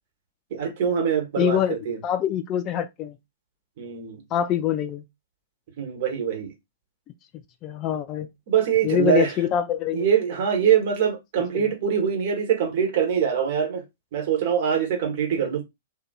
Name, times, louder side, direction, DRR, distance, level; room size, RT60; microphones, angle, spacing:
voice 1, 0.5-2.0 3.8-4.2 5.8-6.5 8.5-9.3 9.9-13.8 14.1-15.6, right 8 dB, 50° right, 1.1 m, -23 dB
voice 2, 1.4-1.8 2.0-3.2 4.3-5.0 7.6-8.3 8.8-10.0 11.5-11.7, left 10 dB, 30° left, 0.3 m, -24 dB
2.7 x 2.5 x 2.3 m
figure-of-eight pair, 110°, 0 cm